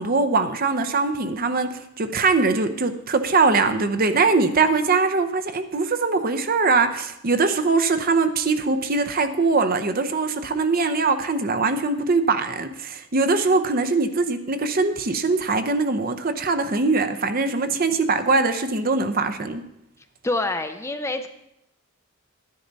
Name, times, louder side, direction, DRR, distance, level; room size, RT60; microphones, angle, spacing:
voice 1, 0.0-19.6, right 3 dB, 40° right, 9 dB, 0.7 m, -22 dB
voice 2, 20.2-21.3, left 2 dB, 15° left, 7 dB, 0.6 m, -26 dB
12.0 x 10.5 x 4.0 m, 0.82 s
head